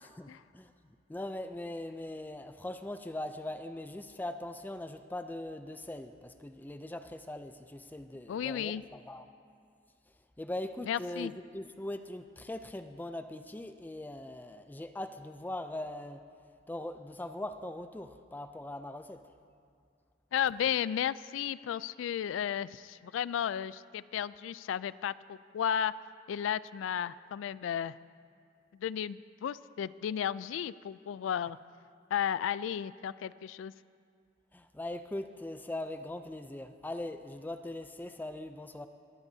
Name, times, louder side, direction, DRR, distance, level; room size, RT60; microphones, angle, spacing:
voice 1, 0.0-0.7 1.1-9.2 10.4-16.2 16.7-19.2 34.5-38.9, left 1 dB, 10° left, 9 dB, 0.4 m, -41 dB
voice 2, 8.3-8.8 10.8-11.3 20.3-25.9 26.3-27.9 28.8-31.6 32.1-33.7, left 9 dB, 85° left, 19 dB, 0.3 m, -33 dB
20.5 x 15.0 x 2.7 m, 2.3 s
head